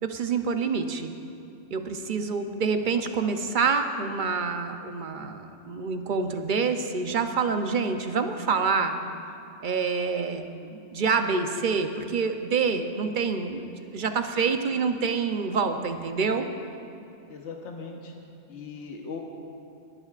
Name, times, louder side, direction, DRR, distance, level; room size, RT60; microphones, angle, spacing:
voice 1, 0.0-1.1 1.7-8.9 9.6-16.5, right 5 dB, 45° right, 7 dB, 0.7 m, -27 dB
voice 2, 17.3-18.1 18.5-19.2, left 5 dB, 60° left, 1 dB, 1.3 m, -39 dB
20.5 x 14.0 x 2.5 m, 2.7 s
omnidirectional pair, 1.3 m